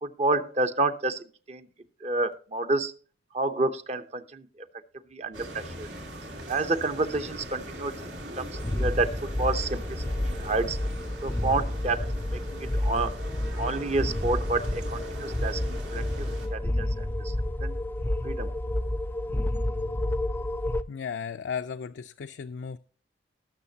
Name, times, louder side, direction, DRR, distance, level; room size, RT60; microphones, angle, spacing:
voice 1, 0.0-1.7 2.0-2.9 3.3-4.5 5.1-5.9 6.5-10.8 11.2-13.2 13.6-17.3 17.6-17.7 18.2-18.5, right 2 dB, 40° right, 9 dB, 0.8 m, -29 dB
sound 1, 5.3-16.5, equal, 85° right, 2.6 m, -40 dB
sound 2, 8.5-20.8, left 1 dB, 10° left, 0.4 m, -30 dB
voice 2, 20.9-22.8, left 6 dB, 75° left, 8 dB, 0.4 m, -35 dB
19.5 x 6.5 x 2.8 m, 0.41 s
head